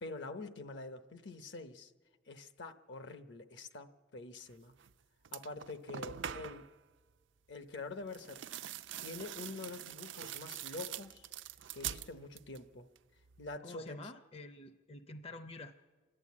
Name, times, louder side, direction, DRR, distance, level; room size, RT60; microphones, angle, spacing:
voice 1, 0.0-1.9 2.3-4.7 5.3-6.7 7.5-8.4 9.0-11.3 11.7-12.9 13.4-14.0, left 3 dB, 65° left, 9 dB, 0.9 m, -46 dB
sound 1, 4.8-4.9 5.2-6.7 8.1-12.7 13.0-13.6, right 9 dB, 70° right, 0.5 m, -44 dB
voice 2, 13.6-15.8, left 2 dB, 30° left, 9 dB, 0.6 m, -48 dB
28.0 x 11.5 x 8.4 m, 1.4 s
head